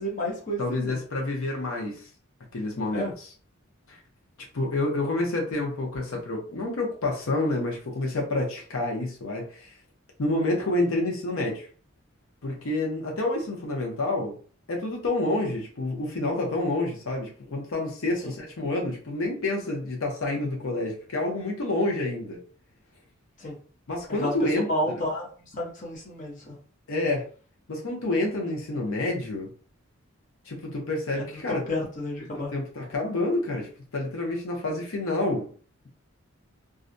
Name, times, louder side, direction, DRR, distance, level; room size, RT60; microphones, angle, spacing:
voice 1, 0.0-1.0 2.9-3.1 18.2-18.3 23.4-23.6 24.2-26.6 31.1-32.5, left 1 dB, 40° left, 0.8 m, -31 dB
voice 2, 0.6-2.0 2.5-3.1 3.9-4.0 4.5-9.7 10.2-11.7 12.4-14.4 14.7-22.4 23.9-24.7 26.9-27.3 27.7-29.5 30.5-31.6 32.5-35.5, left 2 dB, 80° left, 0.7 m, -28 dB
2.4 x 2.1 x 2.6 m
head